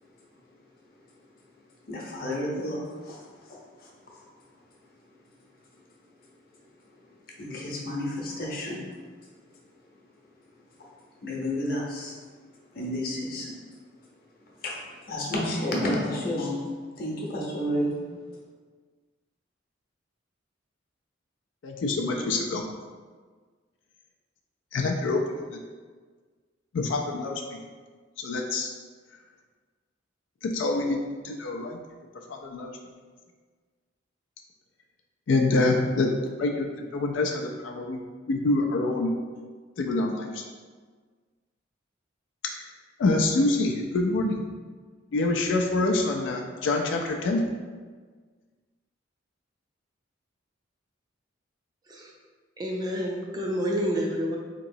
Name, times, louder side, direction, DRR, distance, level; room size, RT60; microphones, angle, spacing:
voice 1, 1.9-4.2 7.4-8.9 11.2-12.1 12.7-13.6 14.6-14.8 15.1-16.6 17.0-18.0, left 1 dB, 50° left, -3 dB, 0.8 m, -31 dB
voice 2, 21.6-22.6 24.7-25.2 25.5-25.6 26.7-27.4 28.2-28.7 30.4-31.0 31.2-31.8 32.3-32.7 35.3-36.1 36.4-36.7 36.9-38.0 38.3-39.1 39.8-40.4 43.0-44.4 45.1-47.4, left 2 dB, 70° left, 1 dB, 0.3 m, -26 dB
voice 3, 52.6-54.4, equal, 20° right, -1 dB, 0.4 m, -28 dB
3.8 x 2.9 x 2.6 m, 1.5 s
head